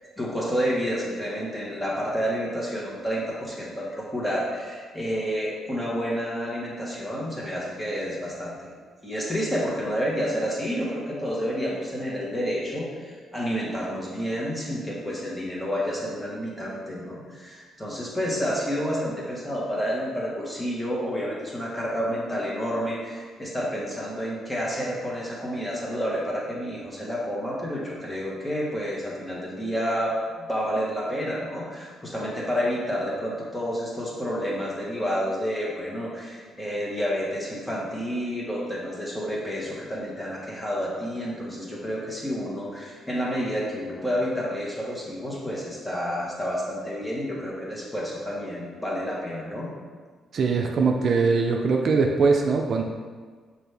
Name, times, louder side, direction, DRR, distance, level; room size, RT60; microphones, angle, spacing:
voice 1, 0.2-8.7 9.0-49.7, equal, 10° left, -5 dB, 1.3 m, -29 dB
voice 2, 50.3-52.8, right 4 dB, 55° right, 3 dB, 0.4 m, -21 dB
6.0 x 2.6 x 3.3 m, 1.5 s
cardioid pair, 90°, 0 cm